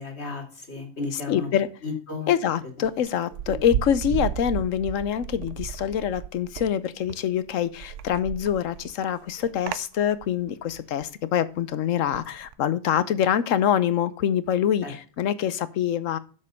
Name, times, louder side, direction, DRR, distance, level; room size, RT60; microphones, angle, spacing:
voice 1, 0.0-1.5 1.8-2.3 3.5-3.6 14.8-14.9, left 4 dB, 55° left, 3 dB, 2.8 m, -33 dB
voice 2, 1.3-1.7 2.3-16.2, left 9 dB, 75° left, 16 dB, 1.1 m, -25 dB
sound 1, 2.8-6.7 7.0-11.1 12.1-12.5, right 10 dB, 70° right, 0.9 m, -34 dB
7.4 x 6.6 x 5.3 m, 0.39 s
omnidirectional pair, 1.4 m